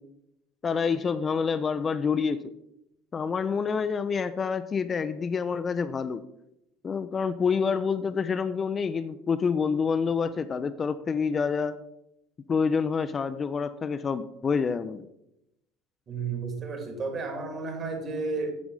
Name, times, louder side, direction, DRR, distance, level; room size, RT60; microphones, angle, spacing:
voice 1, 0.6-2.4 3.1-6.2 6.8-11.8 12.5-15.0, left 5 dB, 30° left, 11 dB, 0.4 m, -27 dB
voice 2, 16.1-18.5, right 4 dB, 35° right, 5 dB, 2.0 m, -32 dB
8.4 x 7.0 x 3.8 m, 0.83 s
figure-of-eight pair, 65°, 0 cm